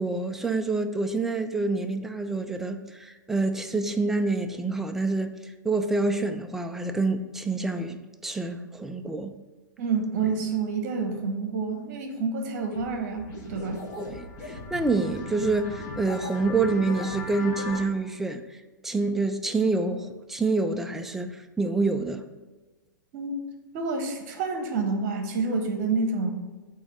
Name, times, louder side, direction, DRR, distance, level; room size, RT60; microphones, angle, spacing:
voice 1, 0.0-9.3 14.0-18.4 18.8-22.2, right 3 dB, 5° right, 7 dB, 0.3 m, -27 dB
voice 2, 9.8-13.8 23.1-23.4 23.7-26.3, right 4 dB, 40° right, 5 dB, 1.1 m, -28 dB
sound 1, 12.7-12.9 13.2-17.8, left 2 dB, 30° left, 1.3 m, -38 dB
8.3 x 2.8 x 5.3 m, 1.2 s
figure-of-eight pair, 105°, 10 cm